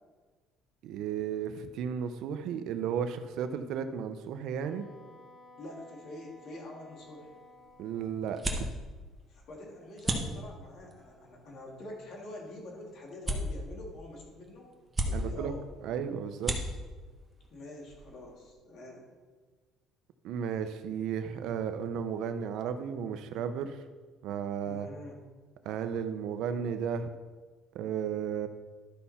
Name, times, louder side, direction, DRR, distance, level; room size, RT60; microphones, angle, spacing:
voice 1, 0.8-4.9 7.8-8.7 15.1-15.5 15.8-16.6 20.2-23.8 24.2-24.9 25.6-27.1 27.7-28.5, right 7 dB, 70° right, 9 dB, 0.7 m, -34 dB
Wind instrument woodwind instrument, 4.6-8.1, left 2 dB, 30° left, 1.1 m, -55 dB
voice 2, 5.6-7.4 9.3-14.7 15.0-15.6 17.5-19.1 24.6-25.2, left 1 dB, 55° left, -1 dB, 2.4 m, -46 dB
sound 1, 7.0-18.5, right 1 dB, 15° right, 1.0 m, -39 dB
12.0 x 5.7 x 4.2 m, 1.4 s
cardioid pair, 140°, 0 cm